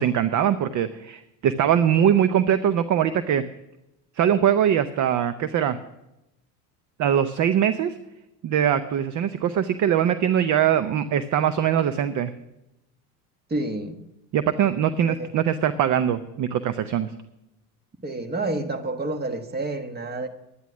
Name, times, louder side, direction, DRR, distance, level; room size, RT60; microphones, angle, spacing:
voice 1, 0.0-3.4 4.2-5.8 7.0-8.0 8.4-12.3 14.3-17.1, right 9 dB, 40° right, 0.7 m, -22 dB
voice 2, 13.5-14.0 15.1-15.3 18.0-20.3, right 2 dB, 20° right, 1.4 m, -29 dB
11.5 x 10.0 x 6.1 m
hypercardioid pair, 85°, 47 cm